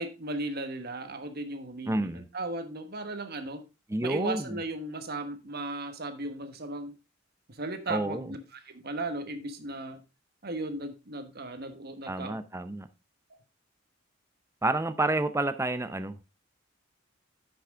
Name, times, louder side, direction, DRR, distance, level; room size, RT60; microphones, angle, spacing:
voice 1, 0.0-3.6 4.0-6.9 7.5-8.4 8.7-10.0 10.4-12.4 13.3-13.4, right 2 dB, 50° right, 1.3 m, -36 dB
voice 2, 1.9-2.3 3.9-4.6 7.9-8.3 12.1-12.9 14.6-16.3, right 2 dB, 15° right, 0.5 m, -29 dB
9.9 x 6.1 x 3.6 m
head